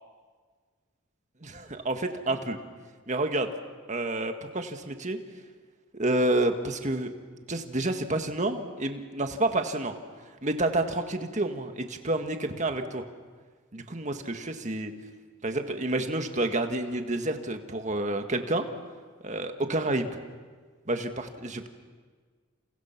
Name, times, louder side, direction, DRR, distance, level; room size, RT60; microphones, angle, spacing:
voice 1, 1.4-2.6 3.1-3.5 3.9-5.2 5.9-7.1 7.5-9.9 10.4-13.0 13.7-14.9 15.4-18.7 19.2-20.2 20.9-21.7, right 2 dB, 35° right, 6 dB, 1.7 m, -29 dB
29.0 x 29.0 x 6.0 m, 1.5 s
head